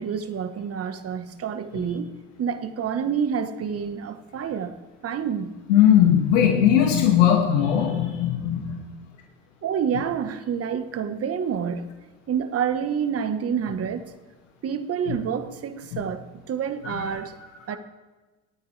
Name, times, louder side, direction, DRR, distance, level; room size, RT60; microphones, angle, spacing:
voice 1, 0.0-2.1 2.4-4.7 5.0-5.5 9.6-11.9 12.3-14.1 14.6-17.3 17.7-17.8, right 7 dB, 40° right, 10 dB, 1.4 m, -28 dB
voice 2, 5.7-8.8 15.9-16.0 16.8-17.0 17.7-17.8, left 10 dB, 80° left, 0 dB, 2.4 m, -19 dB
27.0 x 9.3 x 3.4 m, 1.2 s
hypercardioid pair, 75°, 38 cm